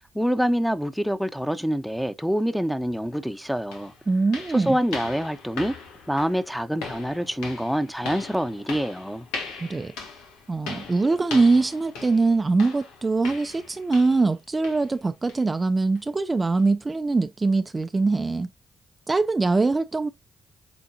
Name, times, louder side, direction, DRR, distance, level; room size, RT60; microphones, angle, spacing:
voice 1, 0.1-3.9 4.5-5.7 6.1-9.3, equal, ahead, 1.1 m, -26 dB
sound 1, 3.1-3.2 3.7-14.4 14.6-14.9 15.3-15.5 16.0-16.1 16.6-16.7, left 4 dB, 85° left, 1.6 m, -39 dB
voice 2, 4.1-4.8 9.6-9.9 10.5-18.5 19.1-20.1, right 3 dB, 30° right, 0.6 m, -22 dB
8.3 x 4.0 x 2.9 m
hypercardioid pair, 45°, 0 cm